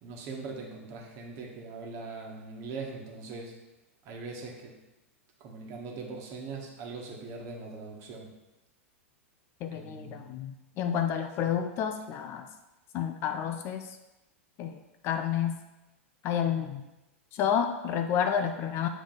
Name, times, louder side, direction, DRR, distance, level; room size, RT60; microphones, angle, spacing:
voice 1, 0.0-3.5 4.0-4.7 5.4-8.3 9.7-10.3 11.4-11.5, right 4 dB, 40° right, 0 dB, 1.4 m, -41 dB
voice 2, 9.6-12.5 12.9-14.0 14.6-15.6 16.2-16.8 17.3-18.9, left 8 dB, 35° left, 8 dB, 0.4 m, -30 dB
7.3 x 3.4 x 4.0 m, 0.99 s
figure-of-eight pair, 95°, 7 cm